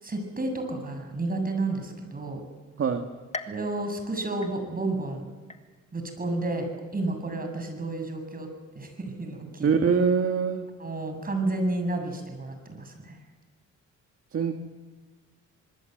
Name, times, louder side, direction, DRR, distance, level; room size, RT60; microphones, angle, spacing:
voice 1, 0.0-2.4 3.5-5.2 5.9-6.7 6.9-8.5 8.7-9.7 10.8-13.2, right 2 dB, 30° right, 5 dB, 7.5 m, -31 dB
sound 1, 3.3-5.0 5.5-6.1 6.6-6.7 7.6-7.7, left 2 dB, 20° left, 2.1 m, -42 dB
voice 2, 9.6-10.7 14.3-14.5, right 6 dB, 50° right, 6 dB, 2.0 m, -23 dB
26.0 x 21.0 x 8.1 m, 1.4 s
cardioid pair, 90°, 30 cm